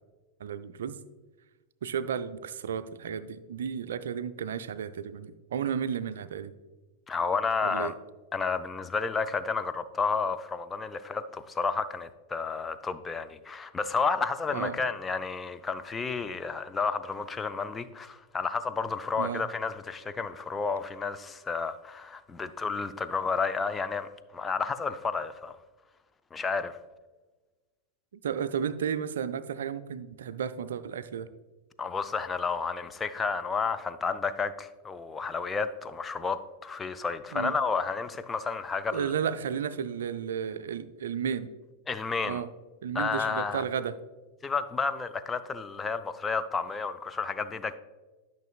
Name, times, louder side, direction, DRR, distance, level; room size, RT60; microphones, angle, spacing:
voice 1, 0.4-1.0 1.8-6.5 7.6-7.9 14.5-14.8 19.2-19.5 28.2-31.3 37.3-37.6 38.9-41.5 42.2-42.5 42.8-44.0, right 7 dB, 60° right, 0.4 m, -33 dB
voice 2, 7.1-7.9 8.3-25.6 26.3-26.8 31.8-39.1 41.9-42.4 42.9-43.6 44.4-47.8, left 4 dB, 15° left, 0.4 m, -31 dB
12.0 x 5.9 x 2.4 m
figure-of-eight pair, 90°, 0 cm